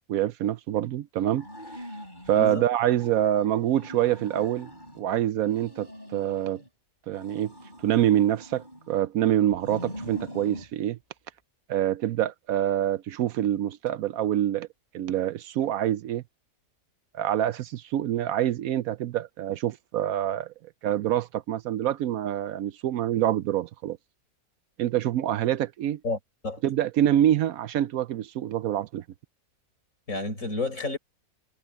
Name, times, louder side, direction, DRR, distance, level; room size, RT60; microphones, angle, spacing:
voice 1, 0.1-1.5 2.3-4.7 5.0-6.6 7.1-7.5 7.8-11.0 11.7-14.7 14.9-16.2 17.1-20.5 20.8-24.0 24.8-26.0 26.6-29.0, right 11 dB, 70° right, 1.0 m, -26 dB
sound 1, 1.3-2.6 3.0-5.1 5.4-6.7 7.1-9.0 9.5-10.7, equal, 30° left, 8.0 m, -43 dB
voice 2, 30.1-31.0, left 3 dB, 55° left, 6.0 m, -30 dB
omnidirectional pair, 1.7 m